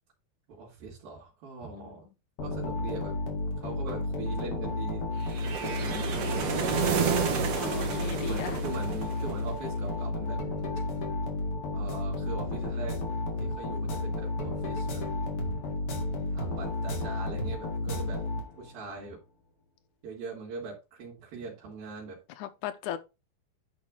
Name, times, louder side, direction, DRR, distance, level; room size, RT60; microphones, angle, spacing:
voice 1, 0.5-2.0 2.4-3.2 3.6-5.1 5.6-7.2 8.2-10.4 11.7-13.0 13.4-15.0 16.3-18.2 18.6-19.2 20.0-22.2, right 4 dB, 85° right, 4.2 m, -41 dB
sound 1, 2.4-18.8, left 2 dB, 45° left, 2.5 m, -32 dB
sound 2, 5.3-9.5, right 7 dB, 55° right, 2.1 m, -30 dB
voice 2, 5.6-6.0 7.5-8.6 17.8-18.2 22.4-23.0, left 10 dB, 70° left, 2.1 m, -38 dB
10.5 x 4.3 x 3.7 m
omnidirectional pair, 4.0 m